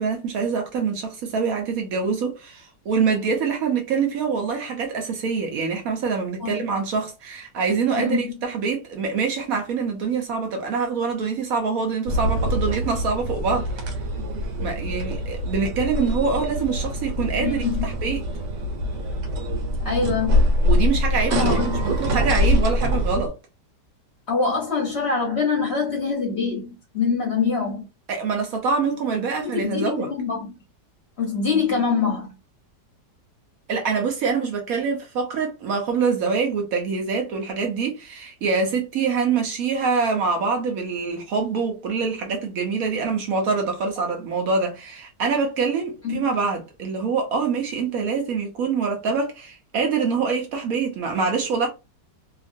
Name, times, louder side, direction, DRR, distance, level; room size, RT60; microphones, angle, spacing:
voice 1, 0.0-13.9 14.6-18.2 20.6-21.6 21.8-23.4 28.1-30.1 33.7-51.7, right 5 dB, 65° right, 1.0 m, -25 dB
voice 2, 8.0-8.4 17.4-17.9 19.8-20.4 21.3-21.9 24.3-27.9 29.4-30.5 31.2-32.3 46.0-46.3, left 5 dB, 50° left, 0.9 m, -24 dB
sound 1, 12.1-23.3, equal, 85° right, 1.4 m, -24 dB
2.9 x 2.5 x 2.5 m
omnidirectional pair, 1.8 m